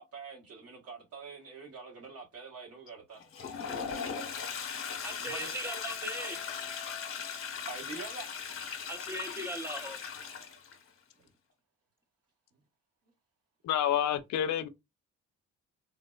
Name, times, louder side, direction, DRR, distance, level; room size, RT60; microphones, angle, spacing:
voice 1, 0.0-3.2 5.2-5.6 7.7-8.3, right 4 dB, 55° right, 1.3 m, -45 dB
Toilet flush, 3.2-10.8, left 6 dB, 45° left, 0.9 m, -39 dB
voice 2, 5.0-6.4 8.9-10.0, right 1 dB, 10° right, 0.5 m, -39 dB
Guitar, 5.6-8.5, left 11 dB, 40° right, 1.2 m, -52 dB
voice 3, 13.6-14.7, left 10 dB, 70° left, 0.5 m, -28 dB
3.8 x 2.0 x 2.3 m
cardioid pair, 90°, 30 cm